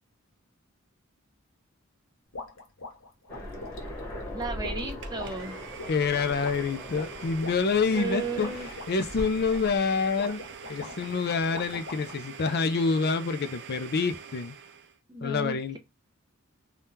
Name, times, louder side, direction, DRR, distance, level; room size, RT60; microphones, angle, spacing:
sound 1, 2.3-12.2, left 3 dB, 70° left, 0.9 m, -43 dB
Aircraft, 3.3-10.4, equal, 10° left, 1.2 m, -41 dB
voice 1, 4.3-5.6 7.9-8.7 15.1-15.8, right 3 dB, 20° right, 0.7 m, -34 dB
Domestic sounds home sounds, 5.0-15.0, right 7 dB, 55° right, 0.5 m, -45 dB
voice 2, 5.9-8.5 8.9-10.4 10.7-14.6 15.2-15.8, left 4 dB, 50° left, 0.4 m, -27 dB
3.4 x 2.3 x 2.7 m
head